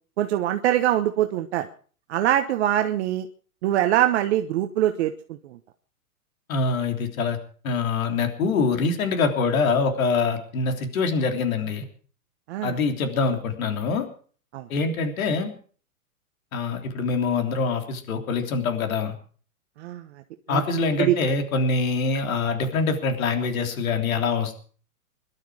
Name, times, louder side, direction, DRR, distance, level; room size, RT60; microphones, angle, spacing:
voice 1, 0.2-1.7 2.1-3.3 3.6-5.4 12.5-12.7 14.5-14.6 19.8-20.0 20.5-20.6 21.0-21.1, right 12 dB, 45° right, 7 dB, 1.2 m, -23 dB
voice 2, 6.5-7.4 7.6-11.8 12.6-14.0 14.7-15.5 16.5-19.1 20.5-24.6, left 4 dB, 65° left, 5 dB, 3.4 m, -24 dB
22.5 x 12.0 x 4.9 m, 0.43 s
hypercardioid pair, 150°, 44 cm